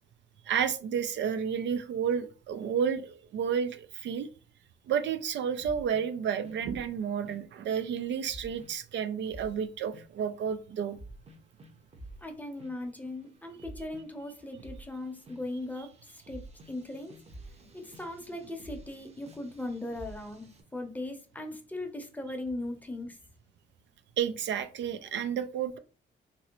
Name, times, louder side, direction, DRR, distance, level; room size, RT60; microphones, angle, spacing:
voice 1, 0.5-4.3 4.9-11.0 24.2-25.8, right 7 dB, 65° right, 0.4 m, -31 dB
sound 1, 5.6-6.9 7.3-7.5 8.3-8.7 9.3-10.2 10.9-12.2 12.6-13.0 13.4-20.6, right 1 dB, 30° right, 0.7 m, -49 dB
voice 2, 12.2-17.2 17.7-20.4 20.7-23.2, left 1 dB, 10° left, 0.7 m, -39 dB
3.0 x 2.6 x 2.9 m
cardioid pair, 90°, 20 cm